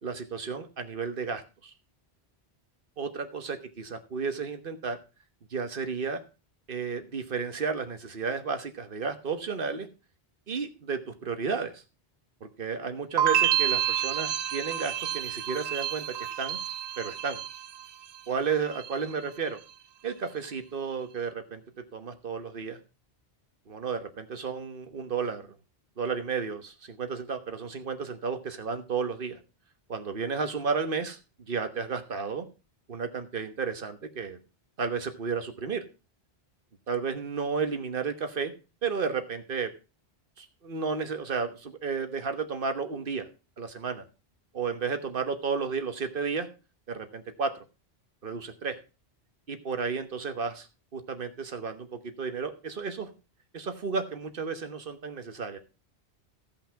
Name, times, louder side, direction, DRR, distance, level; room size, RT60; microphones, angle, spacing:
voice 1, 0.0-1.7 3.0-5.0 5.5-6.2 6.7-9.9 10.5-11.8 12.6-16.6 17.0-17.4 18.3-19.6 20.0-21.6 21.9-22.8 23.7-25.5 26.0-29.4 29.9-31.2 31.5-32.5 32.9-34.4 34.8-35.8 36.9-38.5 38.8-39.7 40.4-43.3 43.6-44.0 44.5-46.5 46.9-47.5 48.2-48.8 49.5-50.7 50.9-53.1 53.5-55.6, right 5 dB, 55° right, 8 dB, 1.3 m, -32 dB
sound 1, 13.2-18.2 18.5-19.1, right 10 dB, 80° right, 0.9 m, -29 dB
15.0 x 5.5 x 4.5 m, 0.32 s
omnidirectional pair, 1.1 m